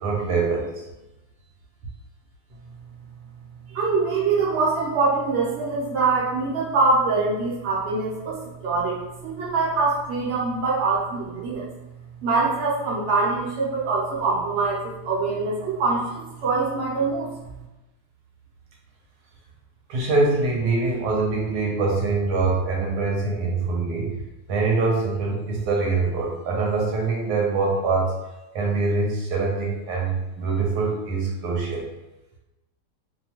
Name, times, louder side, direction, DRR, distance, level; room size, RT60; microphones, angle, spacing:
voice 1, 0.0-0.7 19.9-24.1 24.5-28.1 28.5-31.9, right 3 dB, 85° right, -2 dB, 1.2 m, -24 dB
voice 2, 3.7-11.7 12.2-17.3, right 3 dB, 50° right, -5 dB, 0.9 m, -24 dB
2.8 x 2.2 x 2.8 m, 1.0 s
omnidirectional pair, 1.7 m